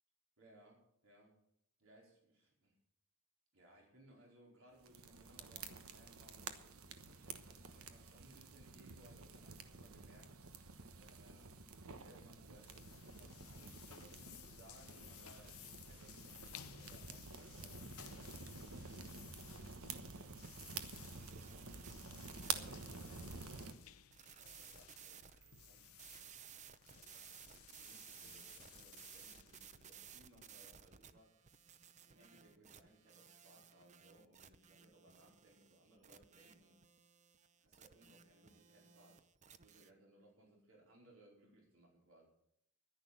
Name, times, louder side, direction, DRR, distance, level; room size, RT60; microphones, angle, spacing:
voice 1, 0.4-0.8 1.0-1.4 1.8-2.7 3.5-10.3 11.0-20.4 20.6-23.8 24.2-25.9 26.9-31.7 32.1-36.8 37.6-39.3 39.6-42.2, right 1 dB, 75° right, -1 dB, 4.7 m, -66 dB
sound 1, 4.8-23.7, right 5 dB, 90° right, 1.2 m, -50 dB
sound 2, 12.1-30.6, left 10 dB, 90° left, 0.7 m, -59 dB
sound 3, 20.4-39.9, right 8 dB, 35° right, 0.6 m, -59 dB
11.5 x 10.5 x 7.5 m, 0.75 s
head